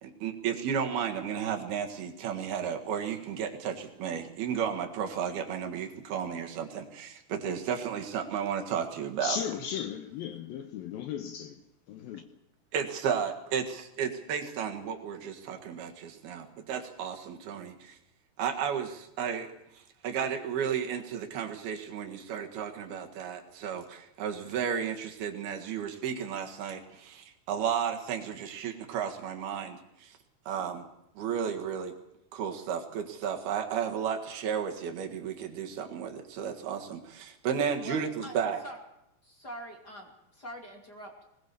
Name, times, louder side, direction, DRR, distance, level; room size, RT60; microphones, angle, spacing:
voice 1, 0.0-9.4 12.7-18.0 18.4-19.5 20.0-30.1 30.5-30.9 31.2-31.9 32.3-38.6, right 7 dB, 65° right, 3.5 m, -33 dB
voice 2, 9.2-11.6 11.9-12.2, left 8 dB, 70° left, 2.5 m, -36 dB
voice 3, 37.8-38.4 38.6-38.8 39.2-41.3, equal, 30° left, 2.6 m, -44 dB
21.0 x 20.5 x 6.9 m
omnidirectional pair, 5.0 m